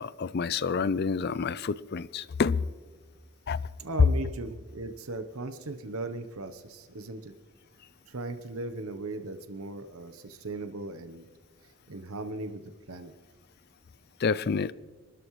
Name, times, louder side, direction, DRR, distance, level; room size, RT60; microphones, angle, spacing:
voice 1, 0.0-2.7 3.5-3.6 14.2-14.7, left 5 dB, 50° left, 0.4 m, -28 dB
voice 2, 3.8-7.3 8.1-11.2 11.9-13.1, right 2 dB, 85° right, 0.9 m, -38 dB
26.5 x 13.0 x 3.1 m
head